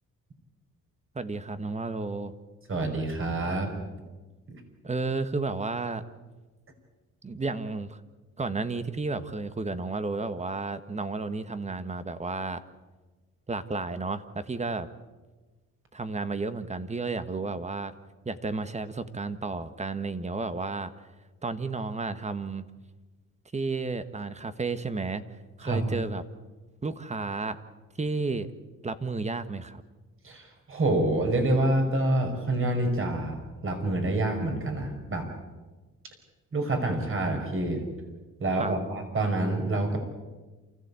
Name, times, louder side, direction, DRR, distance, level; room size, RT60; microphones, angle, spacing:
voice 1, 1.1-2.3 4.8-6.0 7.2-8.0 8.4-12.6 13.5-14.9 15.9-17.9 18.2-20.9 21.4-22.7 23.5-25.2 25.6-26.2 26.8-27.6 28.0-28.5 28.8-29.8 38.6-38.8, right 3 dB, 20° right, 11 dB, 1.5 m, -32 dB
voice 2, 2.7-3.7 4.5-4.6 25.6-25.9 30.2-35.3 36.5-37.8 38.4-40.0, right 2 dB, 45° right, 5 dB, 5.4 m, -27 dB
28.5 x 15.0 x 8.4 m, 1.3 s
cardioid pair, 90°, 30 cm